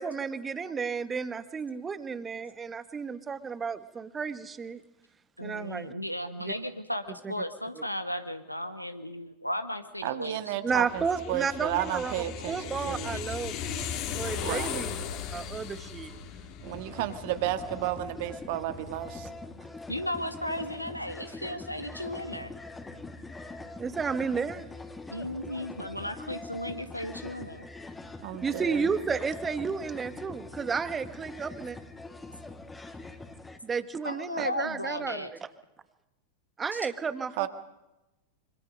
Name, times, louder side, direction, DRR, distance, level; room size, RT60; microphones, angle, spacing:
voice 1, 0.0-4.8 5.4-5.9 7.2-7.3 10.6-12.1 12.5-14.9 15.3-16.1 23.8-24.7 28.4-31.8 33.6-35.3 36.6-37.5, right 5 dB, 20° right, 13 dB, 1.4 m, -32 dB
voice 2, 5.4-10.4 13.1-13.2 15.1-15.2 19.9-22.6 25.1-27.7 34.0-35.3 36.7-36.8, left 1 dB, 90° left, 9 dB, 1.8 m, -35 dB
voice 3, 10.0-13.4 14.4-14.8 16.6-19.3 28.2-28.8 34.4-34.5 37.4-37.5, right 13 dB, 50° right, 10 dB, 1.8 m, -33 dB
sound 1, 10.7-19.2, left 8 dB, 40° left, 2.9 m, -38 dB
sound 2, 16.6-33.6, left 2 dB, 10° left, 2.4 m, -43 dB
26.0 x 25.5 x 5.4 m, 0.99 s
figure-of-eight pair, 90°, 0 cm